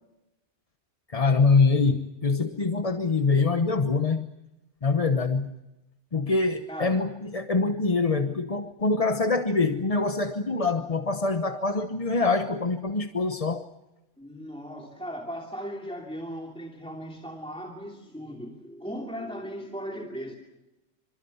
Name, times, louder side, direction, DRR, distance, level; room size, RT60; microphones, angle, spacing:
voice 1, 1.1-4.3 4.8-5.5 6.1-13.7, left 4 dB, 35° left, 7 dB, 1.0 m, -24 dB
voice 2, 6.7-7.0 14.2-20.4, equal, 5° left, 0 dB, 2.8 m, -37 dB
27.5 x 26.0 x 5.7 m, 0.96 s
omnidirectional pair, 1.2 m